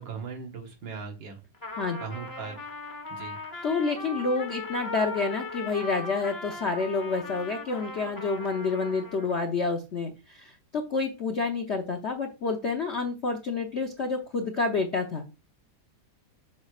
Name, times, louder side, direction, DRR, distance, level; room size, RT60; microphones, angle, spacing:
voice 1, 0.0-1.4 2.0-2.7 3.1-3.4, right 5 dB, 70° right, 4 dB, 2.0 m, -38 dB
Trumpet, 1.5-9.4, left 3 dB, 15° left, 0.7 m, -39 dB
voice 2, 3.6-15.2, left 4 dB, 55° left, 3 dB, 0.7 m, -29 dB
7.3 x 6.2 x 2.4 m, 0.28 s
omnidirectional pair, 2.2 m